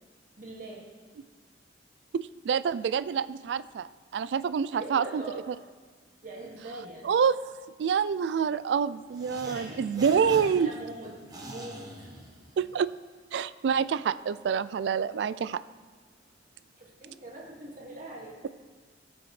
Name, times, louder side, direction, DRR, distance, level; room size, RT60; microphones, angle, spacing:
voice 1, 0.4-0.9 4.7-5.4 6.2-7.1 9.4-12.5 16.8-18.4, right 1 dB, 50° right, -2 dB, 2.0 m, -42 dB
voice 2, 2.1-5.2 7.0-7.4 7.8-10.7 12.6-12.9 13.3-15.6, right 7 dB, 75° right, 16 dB, 0.3 m, -27 dB
sound 1, 9.1-12.8, right 1 dB, 20° right, 1.2 m, -44 dB
16.5 x 7.0 x 3.2 m, 1.5 s
head